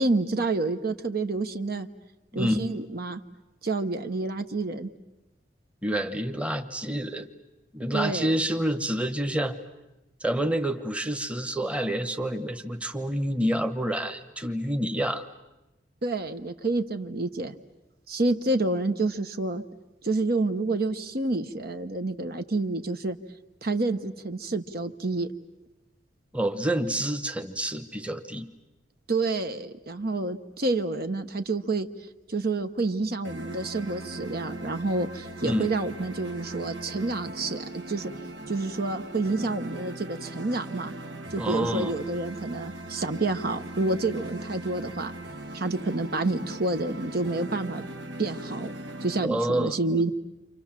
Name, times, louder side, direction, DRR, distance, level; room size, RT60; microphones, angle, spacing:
voice 1, 0.0-1.9 2.3-3.2 3.6-4.9 7.9-8.4 16.0-17.5 18.1-19.6 20.0-23.2 23.6-25.3 29.1-31.9 32.3-38.1 38.5-40.9 41.3-45.1 45.5-47.8 48.2-48.7 49.0-50.1, right 2 dB, 55° right, 8 dB, 1.1 m, -28 dB
voice 2, 2.3-2.7 5.8-7.3 7.7-9.6 10.2-15.3 26.3-28.5 35.4-35.7 41.4-41.9 49.2-50.0, right 1 dB, 5° right, 8 dB, 1.1 m, -28 dB
sound 1, 33.2-49.3, right 1 dB, 75° right, 1.4 m, -40 dB
29.5 x 26.5 x 7.5 m, 0.98 s
head